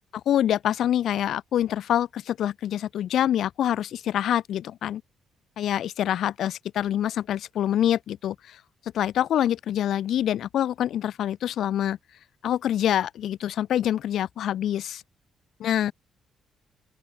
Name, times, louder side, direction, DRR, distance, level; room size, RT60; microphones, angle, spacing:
voice 1, 0.2-5.0 5.6-8.6 8.9-12.0 12.4-15.0 15.6-15.9, left 11 dB, 70° left, 3.1 m, -25 dB
open air
cardioid pair, 90°, 0 cm